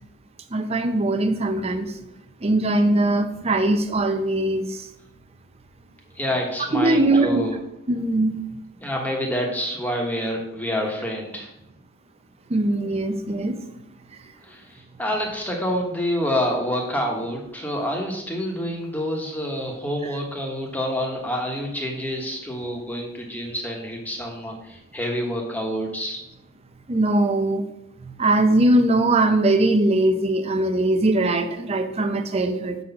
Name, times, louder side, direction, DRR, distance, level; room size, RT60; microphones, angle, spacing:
voice 1, 0.5-1.9 2.4-4.9 6.7-7.5 7.9-8.4 12.5-13.6 26.9-27.7 28.0-32.8, right 2 dB, 30° right, 8 dB, 0.5 m, -21 dB
voice 2, 6.1-7.5 8.8-11.5 14.4-26.2, equal, 10° left, 0 dB, 1.1 m, -27 dB
6.3 x 4.1 x 5.6 m, 0.84 s
head